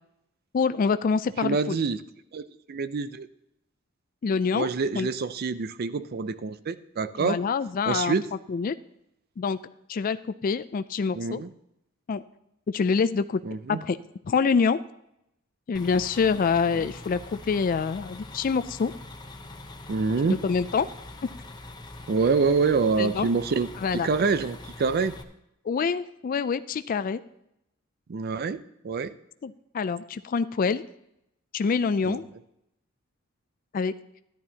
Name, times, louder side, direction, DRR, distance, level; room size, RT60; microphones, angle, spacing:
voice 1, 0.5-1.8 4.2-4.7 4.9-5.1 7.2-8.1 8.5-8.8 9.4-9.6 9.9-11.4 12.1-12.2 12.7-13.4 13.7-14.0 14.2-14.8 15.7-18.9 20.4-20.9 23.0-23.3 23.8-24.1 25.6-27.2 29.4-30.8 31.5-32.2 33.7-33.9, left 5 dB, 45° left, 12 dB, 0.3 m, -26 dB
voice 2, 1.4-2.0 2.3-3.3 4.5-7.4 7.9-8.3 11.1-11.5 13.5-13.8 16.8-16.9 19.9-20.4 22.1-25.1 28.1-29.1 32.0-32.2, right 4 dB, 50° right, 14 dB, 0.4 m, -26 dB
sound 1, 15.7-25.2, left 2 dB, 20° left, 0.8 m, -43 dB
14.0 x 10.5 x 2.8 m, 0.81 s
head